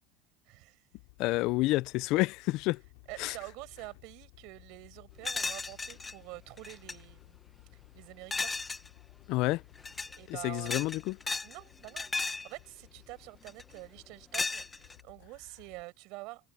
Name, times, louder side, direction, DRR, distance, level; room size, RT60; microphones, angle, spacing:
voice 1, 0.5-0.8 3.1-7.4 7.7-8.5 10.2-10.8 11.4-16.5, right 24 dB, 50° right, 7.3 m, -47 dB
sound 1, 0.9-15.8, left 28 dB, 75° left, 6.0 m, -58 dB
voice 2, 1.2-2.8 3.2-3.3 9.3-9.6 10.4-11.2, left 19 dB, 45° left, 0.3 m, -29 dB
sound 2, 5.2-6.1 6.6-7.0 8.3-8.9 9.8-10.2 10.6-11.6 11.8-12.5 13.5-13.8 14.3-15.0, left 4 dB, 10° left, 0.7 m, -35 dB
cardioid pair, 175°, 0 cm